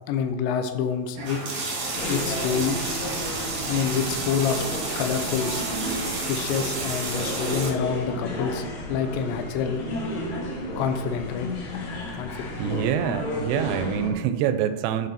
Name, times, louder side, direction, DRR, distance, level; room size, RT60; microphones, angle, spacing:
voice 1, 0.1-1.4 2.1-3.0 3.7-5.6 6.3-9.8 10.8-11.5 12.2-12.6, left 7 dB, 85° left, 7 dB, 2.9 m, -27 dB
sound 1, 1.2-7.7, right 3 dB, 60° right, 1.5 m, -31 dB
sound 2, 1.9-14.1, left 1 dB, 65° left, 2.6 m, -33 dB
voice 2, 12.6-15.1, right 9 dB, 85° right, 11 dB, 2.7 m, -25 dB
12.5 x 4.7 x 4.2 m, 1.2 s
omnidirectional pair, 5.0 m